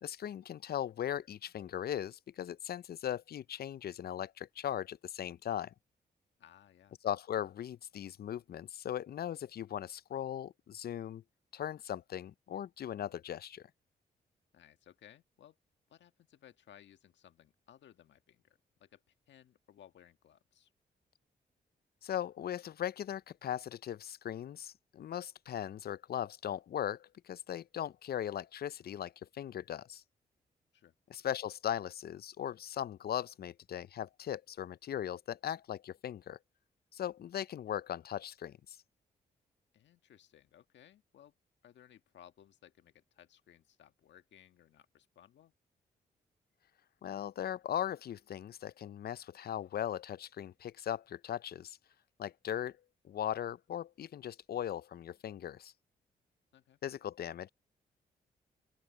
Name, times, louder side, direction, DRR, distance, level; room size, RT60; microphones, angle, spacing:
voice 1, 0.0-5.7 7.0-11.2 11.5-13.7 22.0-30.0 31.1-36.4 36.9-38.8 47.0-51.8 52.2-52.8 53.0-55.7 56.8-57.5, left 10 dB, 55° left, 0.5 m, -39 dB
voice 2, 6.4-7.0 14.5-15.6 15.9-20.7 30.7-30.9 39.7-41.3 41.6-45.5 56.5-56.8, left 10 dB, 75° left, 1.7 m, -60 dB
open air
hypercardioid pair, 45°, 19 cm